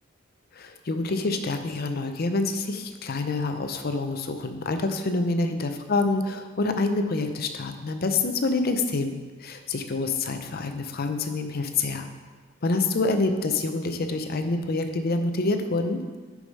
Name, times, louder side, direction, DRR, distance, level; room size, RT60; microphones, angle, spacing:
voice 1, 0.5-12.1 12.6-16.0, left 3 dB, 50° left, 7 dB, 0.6 m, -27 dB
6.6 x 4.9 x 5.3 m, 1.4 s
head